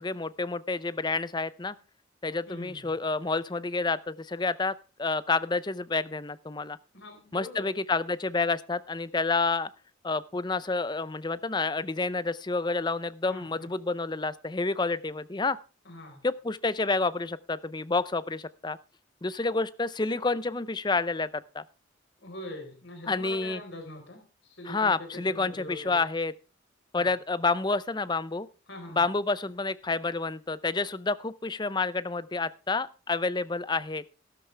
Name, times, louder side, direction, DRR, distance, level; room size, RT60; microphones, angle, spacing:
voice 1, 0.0-1.7 2.2-4.7 5.0-6.8 7.3-9.7 10.0-15.6 16.2-18.8 19.2-21.6 23.1-23.6 24.7-26.3 26.9-28.5 29.0-34.0, left 3 dB, 20° left, 16 dB, 0.5 m, -29 dB
voice 2, 2.5-2.9 6.9-7.7 13.3-13.7 15.8-16.2 22.2-26.0 27.0-27.1 28.7-29.0, left 1 dB, 65° left, 4 dB, 4.4 m, -43 dB
13.5 x 13.0 x 3.4 m, 0.33 s
head